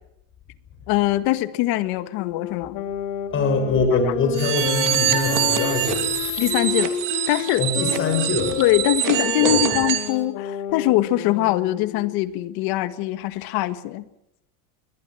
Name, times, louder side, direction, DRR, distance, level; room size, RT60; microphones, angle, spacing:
voice 1, 0.9-2.8 6.4-7.0 7.3-7.7 8.6-14.1, left 16 dB, 55° left, 12 dB, 1.8 m, -22 dB
sound 1, 2.1-12.2, left 10 dB, 70° left, 3.4 m, -31 dB
voice 2, 3.3-6.1 7.6-8.6 9.4-9.6, left 3 dB, 30° left, 6 dB, 6.9 m, -23 dB
sound 2, 4.3-10.1, right 12 dB, 45° right, 2.8 m, -25 dB
sound 3, 4.4-10.2, left 11 dB, 90° left, 7.5 m, -37 dB
22.0 x 20.0 x 7.7 m, 0.81 s
cardioid pair, 165°, 43 cm